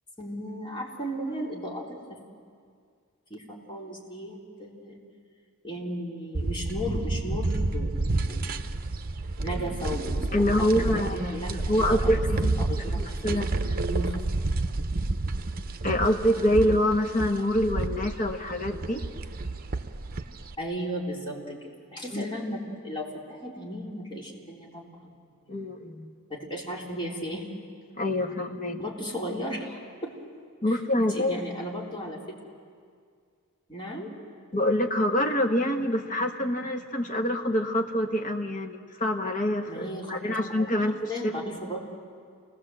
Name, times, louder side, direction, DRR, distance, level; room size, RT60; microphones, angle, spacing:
voice 1, 0.2-2.2 3.3-5.0 5.6-7.9 8.3-8.8 9.4-10.3 10.6-10.7 10.9-12.1 12.6-13.3 13.9-14.2 20.6-21.6 21.9-25.1 25.4-25.6 26.3-27.5 28.8-30.1 30.7-32.2 33.7-34.1 39.7-40.4 41.1-41.8, equal, 25° left, -3 dB, 3.8 m, -35 dB
sound 1, 6.3-20.5, right 2 dB, 45° right, 0.9 m, -30 dB
voice 2, 10.3-13.8 15.8-19.1 22.1-22.3 25.5-26.1 28.0-28.8 30.6-31.3 34.5-41.0, left 1 dB, 40° left, 3 dB, 1.3 m, -26 dB
28.5 x 19.5 x 7.8 m, 2.2 s
head